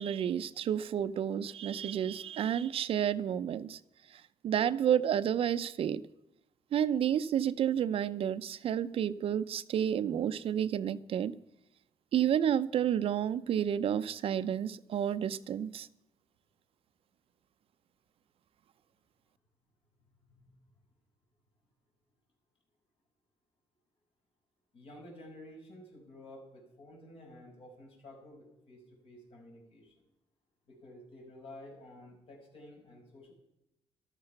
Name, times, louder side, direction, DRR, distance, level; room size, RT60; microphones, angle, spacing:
voice 1, 0.0-3.8 4.1-6.0 6.7-11.4 12.1-15.9, right 9 dB, 65° right, 0.6 m, -30 dB
voice 2, 24.7-29.9 30.7-33.3, left 1 dB, 60° left, 5.5 m, -52 dB
13.5 x 12.5 x 5.9 m
cardioid pair, 115°, 11 cm